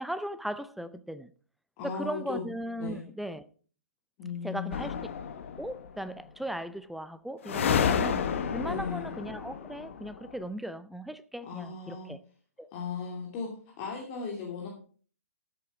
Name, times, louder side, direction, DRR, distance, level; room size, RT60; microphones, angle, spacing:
voice 1, 0.0-1.3 1.8-3.5 4.4-5.1 5.6-8.2 8.5-12.2 12.6-12.7, right 1 dB, ahead, 0.5 m, -37 dB
voice 2, 1.8-2.5 2.8-3.1 4.2-5.0 8.6-9.1 11.5-12.1 12.7-13.5 13.8-14.7, left 5 dB, 35° left, 2.7 m, -37 dB
sound 1, 4.7-5.9 7.4-10.3, left 7 dB, 60° left, 1.3 m, -30 dB
13.0 x 8.0 x 4.7 m
figure-of-eight pair, 125°, 8 cm